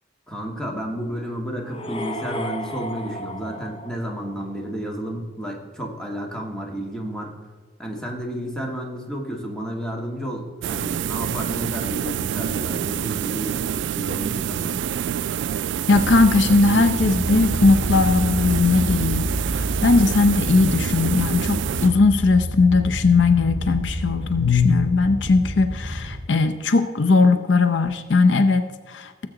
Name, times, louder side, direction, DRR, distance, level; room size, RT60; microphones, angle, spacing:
voice 1, 0.3-7.3 7.8-14.7, equal, 5° left, -1 dB, 1.8 m, -31 dB
sound 1, 1.6-4.6, equal, 30° left, 1.0 m, -34 dB
sound 2, 10.6-22.3, right 9 dB, 70° right, 0.3 m, -27 dB
voice 2, 15.9-29.3, left 3 dB, 70° left, 9 dB, 0.6 m, -19 dB
sound 3, 15.9-26.2, equal, 30° right, 2.7 m, -29 dB
18.0 x 7.6 x 3.8 m, 1.4 s
head